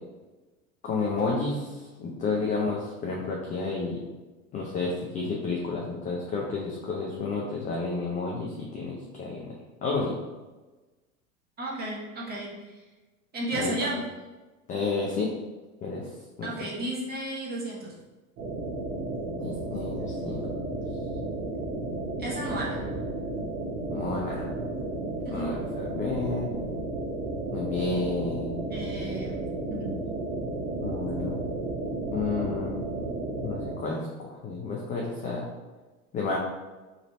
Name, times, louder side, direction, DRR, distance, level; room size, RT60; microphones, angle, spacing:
voice 1, 0.8-1.7 2.0-4.0 4.5-9.5 9.8-10.2 13.5-13.7 14.7-15.3 15.8-16.0 16.4-16.5 19.4-20.5 23.9-24.5 25.3-26.5 27.5-28.6 30.8-31.4 32.1-32.7 33.4-35.4 36.1-36.4, left 3 dB, 20° left, -2 dB, 0.3 m, -31 dB
voice 2, 11.6-12.5 13.3-14.0 16.4-17.9 22.2-22.8 25.2-25.5 28.7-29.4 29.7-29.9, right 1 dB, 20° right, -4 dB, 1.1 m, -33 dB
sound 1, 18.4-33.7, right 2 dB, 60° right, 1.1 m, -33 dB
3.2 x 2.6 x 4.0 m, 1.2 s
hypercardioid pair, 95°, 44 cm